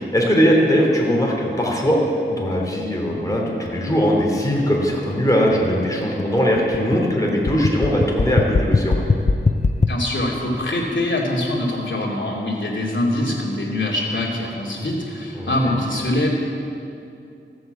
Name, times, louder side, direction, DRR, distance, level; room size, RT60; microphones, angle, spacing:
voice 1, 0.1-2.0 2.3-9.0 15.3-15.7, equal, 15° left, -2 dB, 3.2 m, -20 dB
sound 1, 2.6-9.9, left 3 dB, 35° left, 0.6 m, -21 dB
voice 2, 9.9-16.3, left 1 dB, 70° left, -2 dB, 2.7 m, -23 dB
15.0 x 7.8 x 8.0 m, 2.5 s
wide cardioid pair, 70°, 20 cm